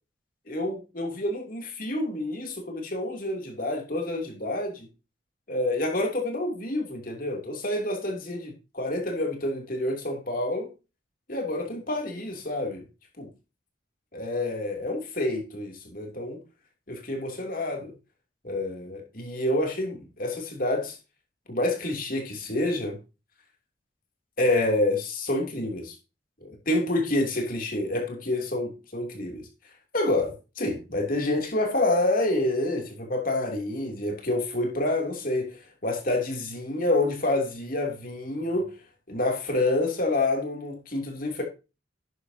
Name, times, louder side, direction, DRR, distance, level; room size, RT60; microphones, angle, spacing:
voice 1, 0.5-4.9 5.5-10.7 11.3-12.8 13.2-13.3 14.1-16.4 16.9-17.9 18.4-21.0 21.5-23.0 24.4-25.9 26.4-29.5 29.9-38.8 39.1-41.4, left 1 dB, 45° left, 2.9 m, -28 dB
12.0 x 9.5 x 2.8 m
head